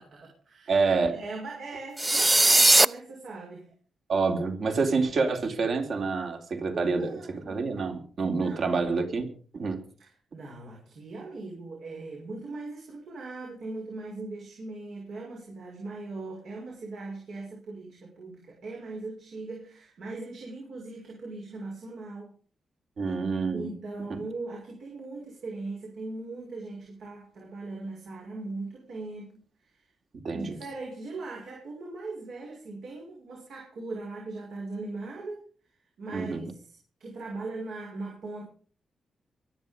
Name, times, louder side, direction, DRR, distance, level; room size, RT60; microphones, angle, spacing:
voice 1, 0.0-0.8 1.1-3.7 6.7-7.7 8.3-8.7 10.0-22.3 23.5-29.8 30.3-35.5 36.0-38.4, right 3 dB, 80° right, -2 dB, 6.0 m, -40 dB
voice 2, 0.7-1.2 4.1-7.2 7.4-9.9 23.0-23.7 30.2-30.6 36.1-36.5, right 4 dB, 65° right, 4 dB, 3.7 m, -27 dB
sound 1, 2.0-2.8, right 2 dB, 15° right, 0.6 m, -18 dB
23.5 x 9.3 x 5.4 m, 0.43 s
cardioid pair, 85°, 0 cm